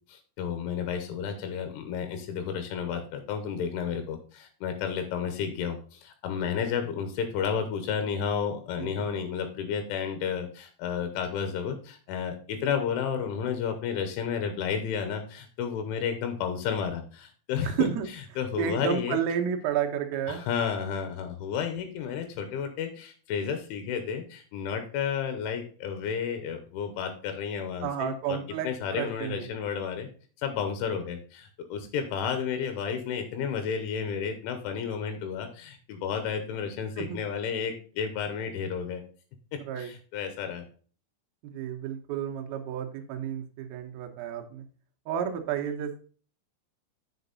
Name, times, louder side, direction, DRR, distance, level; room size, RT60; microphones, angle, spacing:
voice 1, 0.1-17.9 18.4-19.2 20.3-28.4 28.6-30.1 30.4-39.0 39.8-40.7, left 7 dB, 85° left, 7 dB, 3.3 m, -32 dB
voice 2, 17.6-18.1 18.6-20.4 27.8-29.5 37.0-37.2 39.6-39.9 41.4-44.7 45.1-46.0, right 9 dB, 85° right, 4 dB, 2.1 m, -31 dB
8.1 x 5.8 x 4.0 m, 0.41 s
omnidirectional pair, 5.7 m